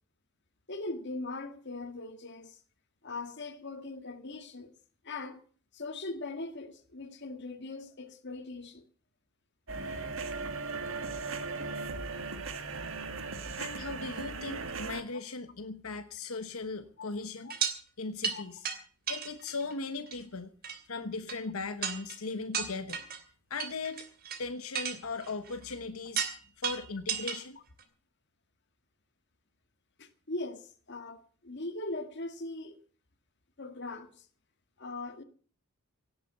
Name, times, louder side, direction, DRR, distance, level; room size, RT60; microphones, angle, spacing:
voice 1, 0.7-2.6 3.0-4.7 5.0-5.4 5.7-8.8 17.0-17.1 17.4-17.5 18.3-18.4 22.5-22.7 30.0-32.8 33.6-34.2 34.8-35.2, left 2 dB, 55° left, 1.8 m, -40 dB
sound 1, 9.7-15.0, right 4 dB, 65° right, 1.9 m, -37 dB
voice 2, 13.6-17.5 18.0-18.7 19.1-20.5 20.9-23.0 23.5-24.0 24.4-26.2 26.6-27.6, left 3 dB, 85° left, 1.2 m, -38 dB
sound 2, 17.5-17.7 18.2-18.4 18.6-18.8 19.1-19.7 20.1-20.2 20.6-20.8 21.3-21.4 21.8-22.2 22.5-23.2 23.6-24.4 24.7-25.7 26.1-26.4 26.6-27.4 27.8-27.9, right 7 dB, 45° right, 2.8 m, -33 dB
17.5 x 8.6 x 7.9 m
head